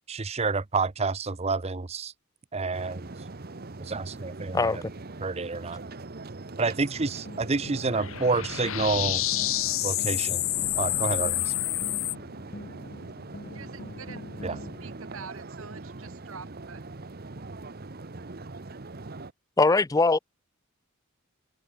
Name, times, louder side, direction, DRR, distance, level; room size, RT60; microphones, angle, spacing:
voice 1, 0.1-2.1 2.5-3.1 3.8-4.8 5.2-5.8 6.6-9.2 9.8-10.4 10.7-11.5 14.4-14.6, right 4 dB, 30° right, 0.7 m, -29 dB
sound 1, 2.7-19.3, right 3 dB, 45° right, 1.0 m, -42 dB
voice 2, 4.5-4.9 19.6-20.2, left 3 dB, 15° left, 0.4 m, -21 dB
sound 2, 6.8-15.0, left 1 dB, 45° left, 4.2 m, -44 dB
sound 3, 7.8-12.1, left 16 dB, 65° left, 1.0 m, -28 dB
voice 3, 13.5-16.8, right 5 dB, 65° right, 1.2 m, -46 dB
head